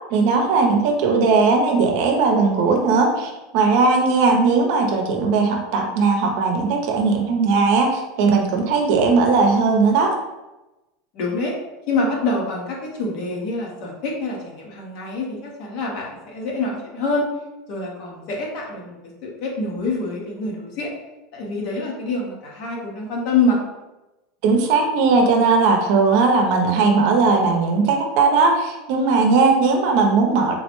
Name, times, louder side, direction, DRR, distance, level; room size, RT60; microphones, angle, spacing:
voice 1, 0.1-10.1 24.4-30.6, right 4 dB, 65° right, 3 dB, 0.6 m, -18 dB
voice 2, 11.1-11.5 11.9-17.3 17.7-19.0 19.2-20.9 21.3-23.6, left 2 dB, 60° left, -1 dB, 1.0 m, -25 dB
3.8 x 2.0 x 3.0 m, 1.0 s
supercardioid pair, 125°, 0 cm